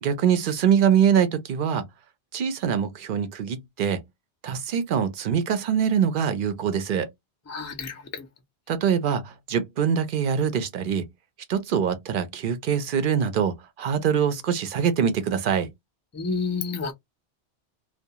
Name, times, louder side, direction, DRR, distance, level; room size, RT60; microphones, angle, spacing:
voice 1, 0.0-1.8 2.3-4.0 4.4-7.1 8.7-11.1 11.5-15.7, right 8 dB, 60° right, 0.7 m, -24 dB
voice 2, 7.5-8.3 16.1-16.9, left 5 dB, 25° left, 0.3 m, -30 dB
2.3 x 2.2 x 2.7 m
omnidirectional pair, 1.1 m